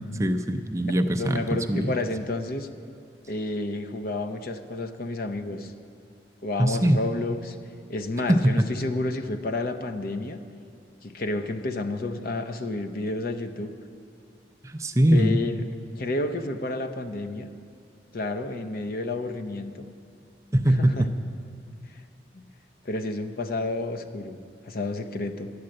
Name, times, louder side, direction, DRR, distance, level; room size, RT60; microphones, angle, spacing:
voice 1, 0.2-1.9 6.6-7.0 8.3-8.6 14.6-15.4 20.5-21.1, right 1 dB, 15° right, 6 dB, 0.5 m, -22 dB
voice 2, 0.8-2.7 3.3-5.7 6.4-7.6 7.9-10.4 11.0-13.7 15.1-15.6 16.0-17.5 18.1-19.9 20.8-21.1 21.9-22.0 22.3-22.5 22.8-24.4 24.6-25.5, left 2 dB, 55° left, 7 dB, 0.7 m, -30 dB
11.5 x 9.6 x 7.6 m, 2.3 s
head